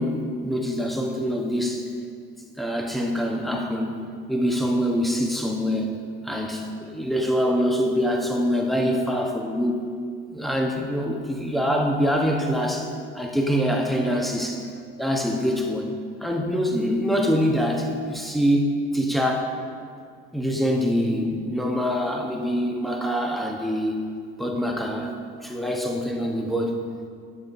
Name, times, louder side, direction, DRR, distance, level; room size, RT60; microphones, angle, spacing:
voice 1, 0.0-1.8 2.6-9.9 10.3-14.7 15.0-15.9 16.2-19.6 20.3-23.9 24.4-25.1 25.4-26.8, equal, ahead, 1 dB, 0.9 m, -25 dB
9.5 x 7.2 x 2.6 m, 2.2 s
hypercardioid pair, 75°, 31 cm